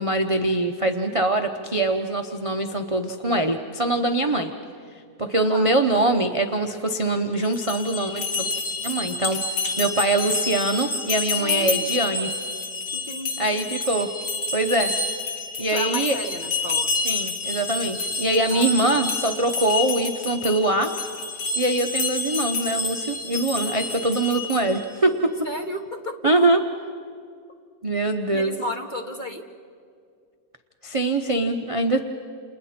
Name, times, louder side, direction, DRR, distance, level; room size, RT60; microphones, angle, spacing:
voice 1, 0.0-4.5 5.2-8.5 8.8-9.4 9.8-12.3 13.4-14.1 14.5-14.9 15.6-16.2 17.0-20.9 21.6-25.3 26.2-26.6 27.8-28.5 30.8-32.0, right 2 dB, 30° right, 5 dB, 0.6 m, -23 dB
voice 2, 5.4-5.8 11.3-12.0 12.9-13.6 15.7-16.9 18.5-19.0 25.4-26.1 28.3-29.4, equal, 30° left, 4 dB, 1.0 m, -33 dB
sound 1, 7.4-24.9, left 3 dB, 85° left, 2.4 m, -28 dB
29.5 x 29.0 x 4.4 m, 2.2 s
omnidirectional pair, 1.9 m